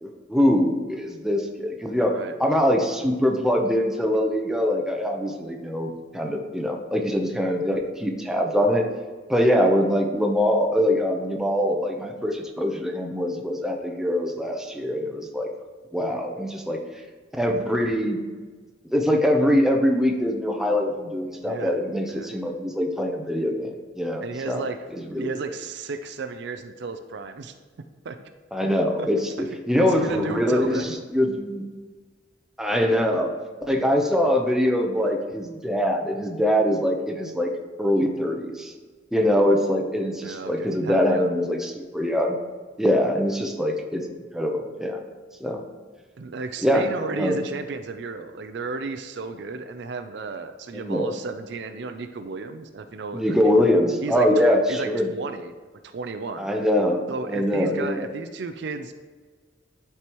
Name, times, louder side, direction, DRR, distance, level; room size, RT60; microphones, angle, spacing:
voice 1, 0.0-8.9 9.3-15.5 15.9-16.8 17.3-18.3 18.9-24.6 24.9-25.4 28.5-29.3 29.7-31.6 32.6-33.3 33.6-37.5 37.8-38.7 39.1-42.4 42.8-44.1 44.3-45.0 45.4-45.6 46.6-46.9 47.1-47.4 50.7-51.1 53.1-55.1 56.4-58.1, equal, 5° right, 2 dB, 0.7 m, -23 dB
voice 2, 21.4-21.8 22.1-22.3 24.2-24.9 25.1-27.5 28.0-28.2 29.0-29.1 29.4-29.5 29.8-31.0 40.2-41.4 42.8-43.1 46.2-53.5 54.0-55.5 55.8-56.5 57.1-58.9, right 4 dB, 65° right, 8 dB, 0.5 m, -33 dB
11.5 x 4.6 x 3.0 m, 1.4 s
head